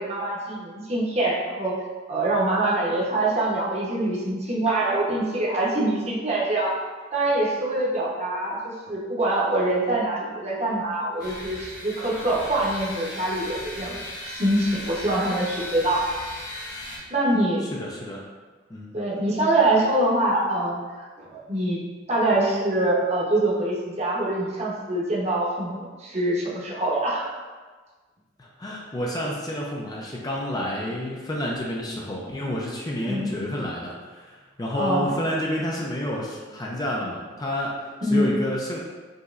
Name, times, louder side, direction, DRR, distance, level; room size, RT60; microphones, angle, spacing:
voice 1, 0.0-1.8 2.1-6.8 7.1-14.0 14.3-16.0 17.1-17.6 18.9-20.8 21.2-21.8 22.1-27.2 33.0-33.3 34.7-35.1 38.0-38.3, right 1 dB, 35° right, -4 dB, 0.9 m, -24 dB
sound 1, 11.2-17.0, left 1 dB, 50° left, 1.1 m, -37 dB
voice 2, 17.7-18.2 18.7-19.0 28.4-38.8, equal, 20° left, -3 dB, 0.4 m, -29 dB
5.2 x 3.0 x 2.5 m, 1.4 s
head